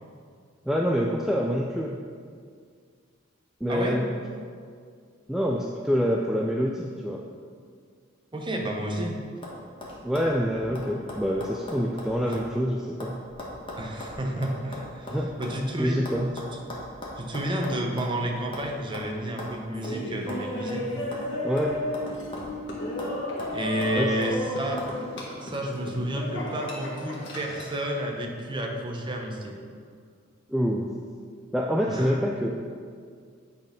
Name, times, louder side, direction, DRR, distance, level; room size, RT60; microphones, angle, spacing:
voice 1, 0.7-1.9 3.6-4.1 5.3-7.2 10.0-13.2 15.1-15.3 15.8-16.3 21.4-21.8 23.9-24.3 30.5-30.9 31.5-32.7, equal, ahead, -2 dB, 0.3 m, -26 dB
voice 2, 8.3-9.2 12.3-12.4 13.8-16.0 17.2-20.9 23.5-24.8 25.4-29.6 31.9-32.2, right 1 dB, 25° right, 1 dB, 0.9 m, -31 dB
sound 1, 9.4-9.6 9.8-12.5 12.8-15.6 16.1-18.2 18.5-18.7 18.9-19.1 19.4-19.5 19.8-20.0 20.3-21.3 21.6-22.6 23.0-23.1 23.4-24.3 24.8-24.9, left 1 dB, 25° left, 1.2 m, -39 dB
Laughter, 19.7-27.8, left 1 dB, 65° left, 1.7 m, -33 dB
8.7 x 4.1 x 5.1 m, 2.1 s
head